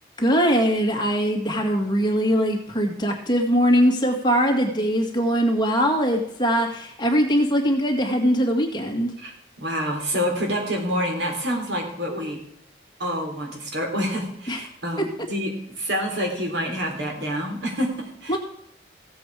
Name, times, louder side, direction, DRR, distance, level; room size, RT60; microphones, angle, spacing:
voice 1, 0.2-9.1 14.5-14.6 15.0-15.1 18.3-18.4, equal, 25° left, 2 dB, 2.0 m, -21 dB
voice 2, 9.6-12.4 13.0-18.4, equal, 85° right, 2 dB, 3.7 m, -27 dB
16.0 x 7.8 x 4.9 m, 0.70 s
head